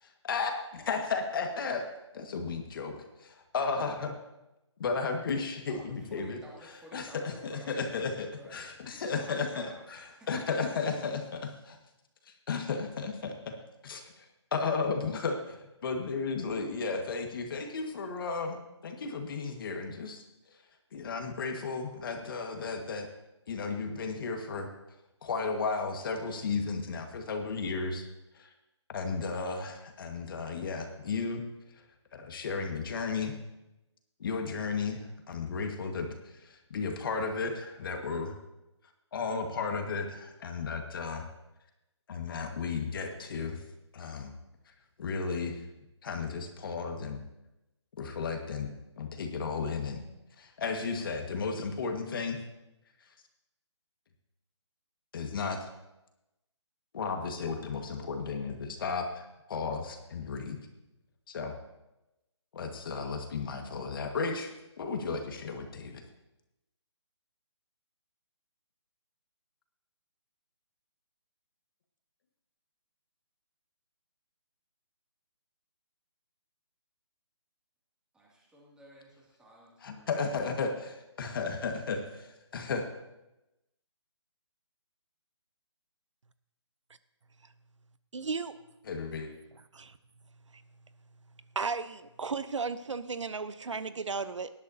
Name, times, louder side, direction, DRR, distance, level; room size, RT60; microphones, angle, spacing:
voice 1, 0.0-1.8 2.1-2.9 3.2-4.1 4.8-6.4 6.9-11.8 12.3-13.5 13.8-14.2 14.5-15.6 15.8-18.6 18.8-20.2 20.9-23.1 23.5-24.7 25.2-28.1 28.3-28.5 28.9-31.4 32.1-33.4 34.2-38.3 39.1-41.3 42.1-43.6 43.9-44.3 45.0-45.6 46.0-47.2 48.0-48.7 49.0-50.0 50.4-52.4 55.1-55.7 56.9-60.6 61.3-61.6 62.5-64.5 64.8-66.0 79.8-82.8 88.9-89.3, left 4 dB, 45° left, 4 dB, 1.7 m, -34 dB
voice 2, 5.7-8.6 8.9-10.7 78.1-80.1, right 1 dB, 5° right, -4 dB, 2.5 m, -53 dB
voice 3, 88.1-88.6 89.7-90.0 90.5-90.6 91.6-94.5, right 4 dB, 80° right, 13 dB, 0.8 m, -34 dB
18.5 x 11.5 x 2.8 m, 0.95 s
figure-of-eight pair, 150°, 15 cm